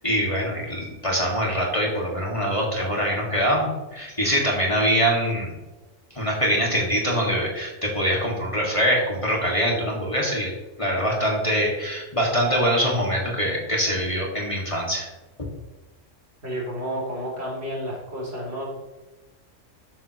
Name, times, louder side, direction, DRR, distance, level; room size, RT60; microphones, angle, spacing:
voice 1, 0.0-5.6 6.1-10.5 10.8-15.1 15.4-15.5, equal, 25° left, -2 dB, 2.1 m, -24 dB
voice 2, 16.4-18.7, equal, 55° right, -3 dB, 3.3 m, -31 dB
12.5 x 9.5 x 3.0 m, 1.1 s
omnidirectional pair, 1.3 m